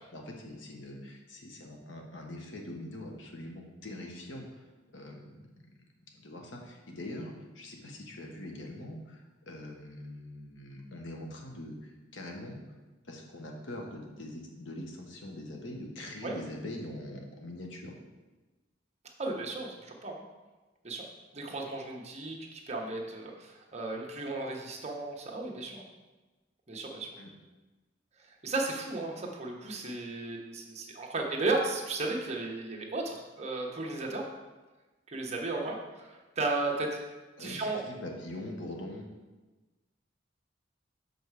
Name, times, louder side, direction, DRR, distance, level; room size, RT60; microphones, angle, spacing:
voice 1, 0.1-4.7 4.9-5.4 6.1-12.6 13.0-18.0 27.2-27.3 37.4-39.1, left 1 dB, 90° left, 1 dB, 1.2 m, -43 dB
voice 2, 19.2-20.2 20.8-21.0 21.3-25.8 26.7-27.1 28.4-34.2 35.1-37.0 37.4-37.8, right 2 dB, 35° right, 0 dB, 1.1 m, -34 dB
6.5 x 5.3 x 4.8 m, 1.2 s
head